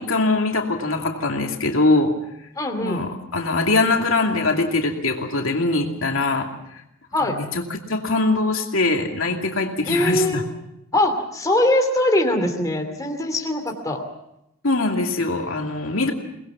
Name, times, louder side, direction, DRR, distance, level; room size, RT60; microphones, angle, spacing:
voice 1, 0.0-2.1 2.8-6.8 7.3-10.4 14.6-16.1, left 2 dB, 75° left, 2 dB, 2.6 m, -22 dB
voice 2, 2.5-3.0 7.1-7.4 9.8-10.4 10.9-14.0, left 1 dB, 15° left, 3 dB, 2.6 m, -22 dB
23.5 x 19.5 x 7.0 m, 0.83 s
head